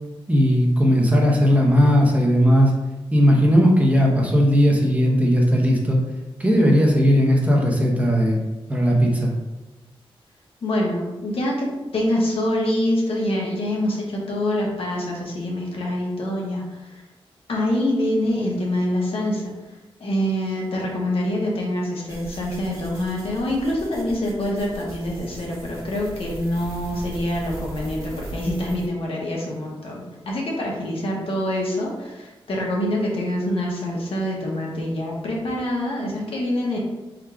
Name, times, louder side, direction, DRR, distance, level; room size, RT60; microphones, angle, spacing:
voice 1, 0.3-2.7 3.1-6.0 6.4-8.4 8.7-9.3, equal, 15° right, -1 dB, 0.8 m, -17 dB
voice 2, 10.6-17.0 17.5-19.4 20.0-36.8, left 1 dB, 70° left, -2 dB, 1.0 m, -25 dB
sound 1, 22.1-28.9, right 1 dB, 30° right, 1.2 m, -38 dB
3.7 x 2.3 x 4.5 m, 1.1 s
wide cardioid pair, 95°, 10 cm